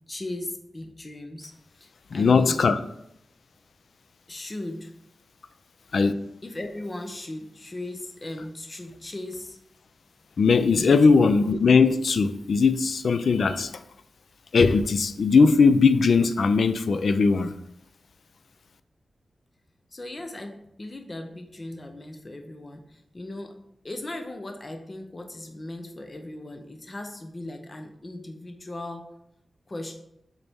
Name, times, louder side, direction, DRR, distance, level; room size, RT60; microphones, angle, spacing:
voice 1, 0.1-2.6 4.3-4.9 6.4-9.6 10.7-11.3 19.9-23.6 23.8-29.1 29.7-30.0, left 1 dB, 30° left, 5 dB, 0.6 m, -38 dB
voice 2, 2.1-2.8 5.9-6.1 10.4-13.8 14.5-17.5, left 4 dB, 65° left, 12 dB, 0.4 m, -19 dB
6.9 x 4.2 x 3.5 m, 0.78 s
wide cardioid pair, 150°, 0 cm